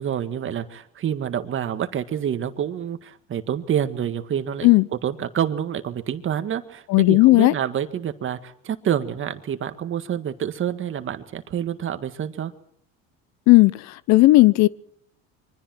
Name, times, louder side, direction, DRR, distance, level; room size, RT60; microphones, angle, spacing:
voice 1, 0.0-4.7 5.0-12.5, right 9 dB, 40° right, 1.8 m, -27 dB
voice 2, 6.9-7.5 13.5-14.7, left 20 dB, 60° left, 0.7 m, -14 dB
26.5 x 24.0 x 4.6 m
supercardioid pair, 110°, 31 cm